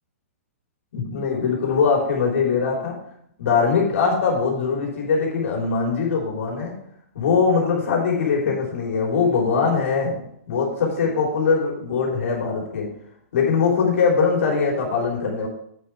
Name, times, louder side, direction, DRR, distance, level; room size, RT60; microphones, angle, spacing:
voice 1, 0.9-3.0 3.4-6.7 7.1-10.2 10.5-12.9 13.3-15.5, left 5 dB, 65° left, -2 dB, 3.5 m, -21 dB
8.5 x 7.0 x 4.7 m, 0.71 s
hypercardioid pair, 140°, 8 cm